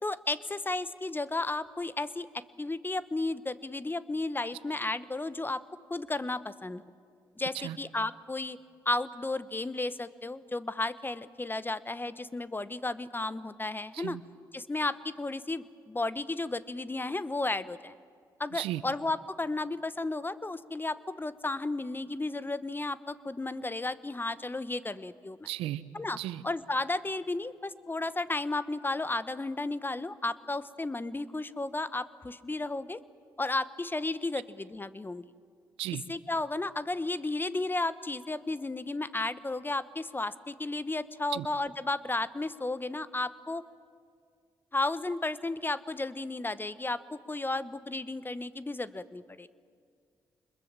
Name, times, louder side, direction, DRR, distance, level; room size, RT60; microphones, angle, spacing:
voice 1, 0.0-5.6 5.9-6.8 7.4-8.6 8.8-14.2 14.5-17.9 18.4-25.5 25.9-26.2 26.4-33.0 33.4-35.2 36.1-43.6 44.7-49.5, left 2 dB, 20° left, 15 dB, 1.0 m, -33 dB
voice 2, 25.5-25.8 26.2-26.4 35.8-36.0 41.3-41.5, right 14 dB, 85° right, 16 dB, 0.6 m, -34 dB
25.0 x 21.5 x 7.5 m, 2.2 s
supercardioid pair, 50°, 10 cm